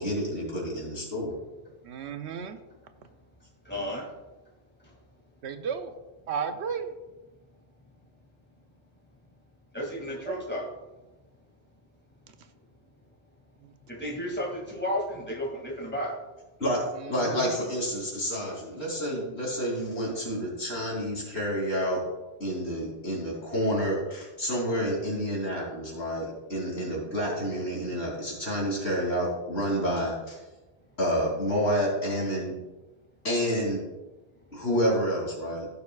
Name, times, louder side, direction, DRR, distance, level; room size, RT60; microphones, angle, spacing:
voice 1, 0.0-1.4 16.6-16.8 17.1-22.1 22.4-30.4 31.0-32.5 33.2-33.8 34.5-35.7, equal, 90° left, -3 dB, 3.4 m, -29 dB
voice 2, 1.8-2.6 5.4-5.9 6.3-6.9 10.3-10.4 13.6-13.7 17.0-17.7, right 6 dB, 90° right, 8 dB, 1.0 m, -34 dB
voice 3, 3.7-4.1 9.7-10.7 13.9-16.1, equal, 10° left, -3 dB, 2.3 m, -32 dB
16.0 x 7.0 x 2.4 m, 1.1 s
omnidirectional pair, 1.1 m